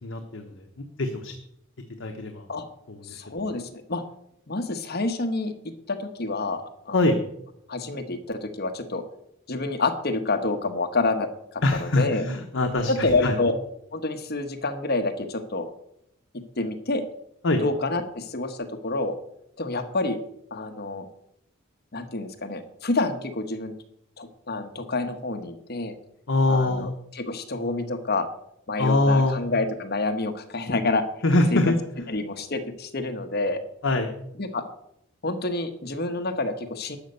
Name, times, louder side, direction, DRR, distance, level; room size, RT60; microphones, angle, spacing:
voice 1, 0.0-1.4 2.0-2.5 2.9-3.4 6.9-7.2 11.6-13.4 17.4-17.6 26.3-26.9 28.8-29.3 31.2-31.7 33.8-34.1, left 2 dB, 65° left, 4 dB, 1.1 m, -23 dB
voice 2, 3.0-4.0 4.5-5.5 5.9-7.0 7.7-9.0 9.5-12.3 12.9-13.5 13.9-15.7 16.3-17.0 17.6-19.1 19.6-20.2 20.5-21.1 21.9-23.7 24.2-25.9 26.5-28.3 28.7-31.0 31.5-31.7 32.1-33.6 34.4-34.6 35.2-37.0, left 2 dB, 50° left, 7 dB, 1.1 m, -28 dB
12.0 x 5.3 x 8.0 m, 0.76 s
head